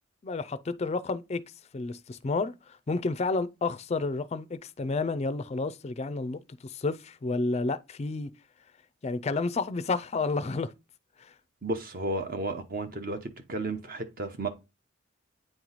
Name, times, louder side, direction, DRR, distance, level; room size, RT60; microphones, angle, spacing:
voice 1, 0.2-1.4 1.7-8.3 9.0-10.7 11.2-11.3, left 3 dB, 30° left, 0.4 m, -30 dB
voice 2, 11.6-14.5, right 2 dB, 45° right, 0.8 m, -33 dB
9.0 x 3.0 x 3.9 m
head